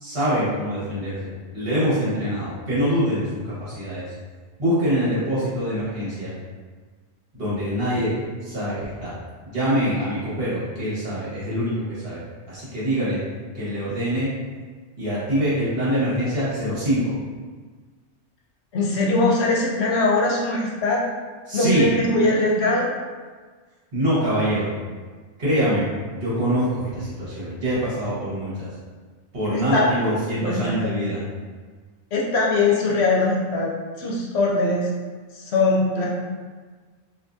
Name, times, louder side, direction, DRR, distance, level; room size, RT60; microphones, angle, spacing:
voice 1, 0.0-4.0 4.6-6.3 7.3-8.2 8.4-9.1 9.5-11.7 12.0-12.2 12.5-13.2 13.5-14.3 15.0-17.2 21.5-21.9 23.9-24.7 25.4-25.8 26.1-28.7 29.3-31.2, equal, 55° right, -9 dB, 1.5 m, -24 dB
voice 2, 18.7-21.0 21.5-22.9 29.5-29.9 30.3-30.9 32.1-33.7 34.0-34.9 35.3-36.1, left 2 dB, 70° left, -3 dB, 0.9 m, -21 dB
3.5 x 2.8 x 2.6 m, 1.4 s
omnidirectional pair, 1.2 m